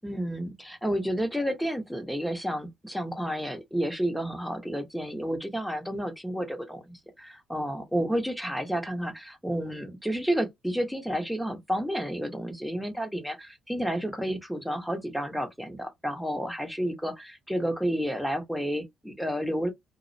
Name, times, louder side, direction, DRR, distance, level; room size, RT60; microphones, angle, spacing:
voice 1, 0.0-19.7, equal, ahead, 0.8 m, -31 dB
2.3 x 2.0 x 2.6 m
cardioid pair, 90°, 0 cm